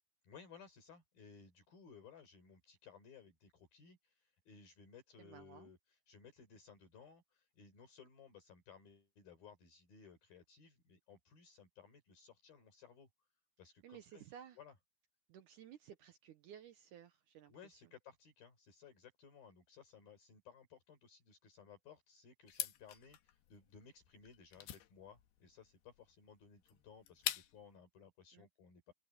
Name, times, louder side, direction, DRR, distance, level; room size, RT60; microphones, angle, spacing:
voice 1, 0.2-13.1 13.6-14.2 14.6-14.7 17.5-28.9, left 6 dB, 65° left, 6.0 m, -60 dB
voice 2, 5.2-5.7 13.8-14.6 15.3-17.5 28.3-28.5, right 9 dB, 70° right, 2.0 m, -56 dB
sound 1, 22.5-27.8, left 13 dB, 85° left, 3.3 m, -45 dB
omnidirectional pair, 4.7 m